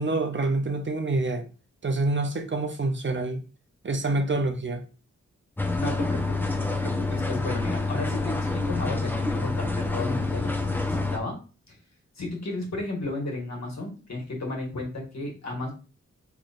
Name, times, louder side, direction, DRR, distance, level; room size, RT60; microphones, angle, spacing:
voice 1, 0.0-1.4 1.8-3.4 3.8-4.8, right 2 dB, 40° right, 7 dB, 0.6 m, -26 dB
sound 1, 5.6-11.2, left 3 dB, 5° left, 0.7 m, -27 dB
voice 2, 5.7-11.4 11.7-11.8 12.1-15.7, left 2 dB, 60° left, -1 dB, 1.6 m, -33 dB
3.9 x 3.2 x 2.5 m, 0.34 s
cardioid pair, 45°, 30 cm